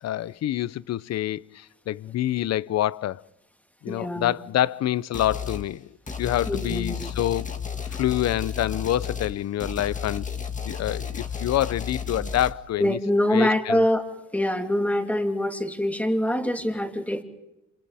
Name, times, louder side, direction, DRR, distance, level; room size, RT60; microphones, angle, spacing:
voice 1, 0.0-3.2 3.8-5.9 6.2-7.6 7.9-10.3 10.6-13.0 13.3-13.8, left 13 dB, 60° left, 0.6 m, -27 dB
voice 2, 3.9-4.3 6.5-7.1 12.8-14.0 14.3-17.2, left 1 dB, 5° left, 2.9 m, -24 dB
sound 1, 5.1-5.7 6.1-12.5, left 6 dB, 25° left, 1.9 m, -32 dB
29.5 x 27.0 x 3.5 m
cardioid pair, 90°, 30 cm